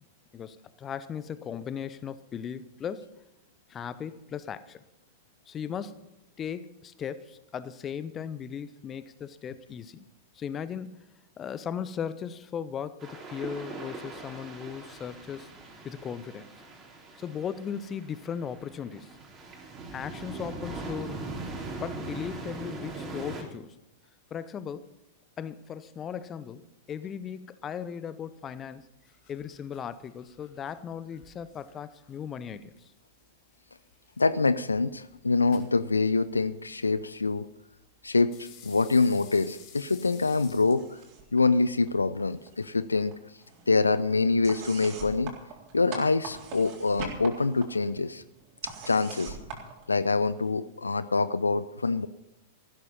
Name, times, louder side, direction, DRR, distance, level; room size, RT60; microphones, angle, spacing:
voice 1, 0.3-3.1 3.7-4.8 5.5-6.1 6.4-10.1 10.3-11.0 11.4-15.5 15.8-16.5 17.2-19.1 19.9-21.2 21.8-23.8 24.3-24.9 25.4-28.8 29.3-32.7, left 7 dB, 25° left, 15 dB, 0.9 m, -37 dB
sound 1, 13.0-23.4, right 3 dB, 25° right, 3.7 m, -40 dB
sound 2, 28.8-42.7, left 7 dB, 45° left, 3.2 m, -57 dB
voice 2, 34.2-37.5 38.0-41.0 41.3-43.1 43.7-45.3 45.7-48.2 48.6-49.4 49.9-52.1, left 3 dB, 80° left, 15 dB, 0.5 m, -25 dB
sound 3, 40.6-41.4 41.7-42.7 43.0-50.5, right 4 dB, 40° right, 3.9 m, -44 dB
15.5 x 12.5 x 5.6 m, 0.89 s
figure-of-eight pair, 95°, 0 cm